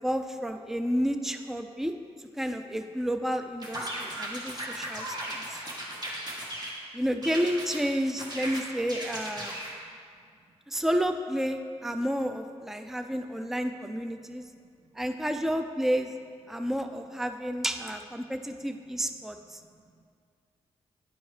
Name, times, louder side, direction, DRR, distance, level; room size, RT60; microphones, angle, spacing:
voice 1, 0.0-1.9 2.3-5.6 6.9-9.6 10.7-14.5 15.0-16.1 16.5-19.6, equal, 5° right, 7 dB, 0.4 m, -30 dB
sound 1, 3.6-6.8 7.2-7.8 8.2-9.8, right 1 dB, 35° right, 1.4 m, -37 dB
voice 2, 4.0-4.7 9.9-10.3 12.8-13.0 14.2-15.0 16.5-16.7 18.2-18.4 18.9-19.2 19.5-20.0, right 3 dB, 85° right, 2 dB, 0.7 m, -64 dB
9.9 x 4.4 x 3.2 m, 2.2 s
cardioid pair, 60°, 11 cm